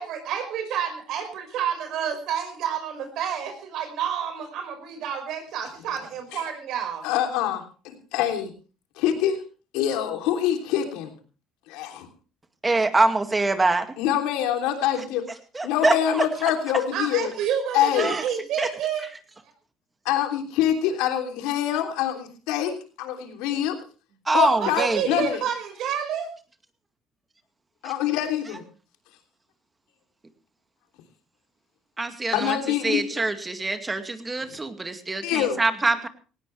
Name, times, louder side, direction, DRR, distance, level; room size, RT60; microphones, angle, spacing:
voice 1, 0.0-1.2 1.5-7.0 16.9-19.0 24.6-26.3, right 8 dB, 65° right, 7 dB, 5.4 m, -29 dB
voice 2, 7.0-8.5 9.0-9.4 9.7-11.1 11.7-12.1 14.0-15.2 15.6-17.3 17.7-18.1 20.0-23.8 24.3-25.4 27.8-28.6 32.3-33.2 34.4-34.6 35.2-35.6, left 10 dB, 80° left, 5 dB, 3.2 m, -25 dB
voice 3, 12.6-13.9 15.5-16.2 18.0-18.2 18.6-18.7 24.3-25.2 27.8-27.9 32.0-32.6 32.8-36.1, right 3 dB, 20° right, 8 dB, 2.2 m, -24 dB
18.5 x 16.5 x 3.3 m, 0.36 s
supercardioid pair, 90°, 0 cm